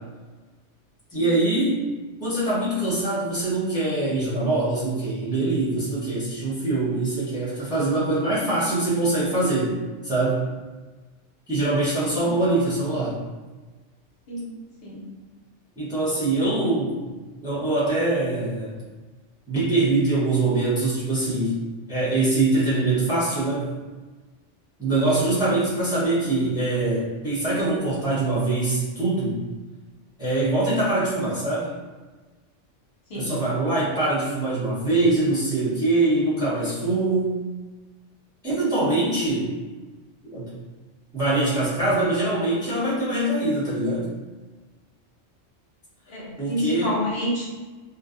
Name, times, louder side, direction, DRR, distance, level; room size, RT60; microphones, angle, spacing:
voice 1, 1.1-1.9 2.2-9.7 10.0-10.4 11.5-13.2 15.8-17.1 17.4-18.8 19.5-21.6 21.9-23.7 24.8-29.4 30.2-31.7 33.1-37.4 38.4-39.5 40.3-40.5 41.1-44.1 46.4-46.9, right 2 dB, 5° right, -9 dB, 0.6 m, -23 dB
voice 2, 46.1-47.5, left 1 dB, 60° left, -6 dB, 0.8 m, -28 dB
2.4 x 2.2 x 2.4 m, 1.3 s
omnidirectional pair, 1.3 m